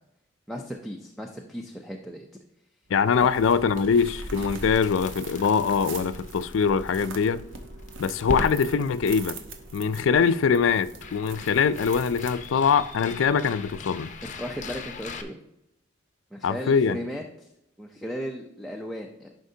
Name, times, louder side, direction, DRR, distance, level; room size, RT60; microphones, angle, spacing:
voice 1, 0.5-2.3 3.2-3.3 14.4-15.4 16.3-17.5 17.8-19.3, equal, ahead, 0.5 m, -36 dB
voice 2, 2.9-7.4 8.0-9.4 9.7-14.1 16.4-17.0, left 6 dB, 75° left, 0.4 m, -23 dB
sound 1, 2.9-12.8, right 3 dB, 75° right, 0.9 m, -43 dB
Crackle, 4.4-15.2, left 2 dB, 40° left, 0.7 m, -39 dB
11.5 x 5.2 x 2.7 m
head